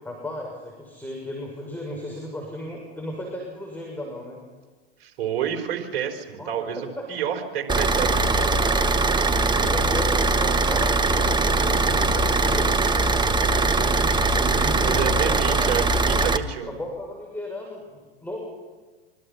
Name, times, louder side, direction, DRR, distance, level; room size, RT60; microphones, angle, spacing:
voice 1, 0.0-4.4 6.4-6.5 7.0-7.1 8.6-8.9 9.4-15.7 16.7-18.4, left 1 dB, 5° left, -2 dB, 6.9 m, -35 dB
voice 2, 5.0-8.5 14.8-16.7, right 9 dB, 65° right, 5 dB, 4.3 m, -29 dB
Car / Idling, 7.7-16.4, right 3 dB, 15° right, 1.4 m, -21 dB
25.5 x 24.5 x 5.9 m, 1.3 s
hypercardioid pair, 100°, 30 cm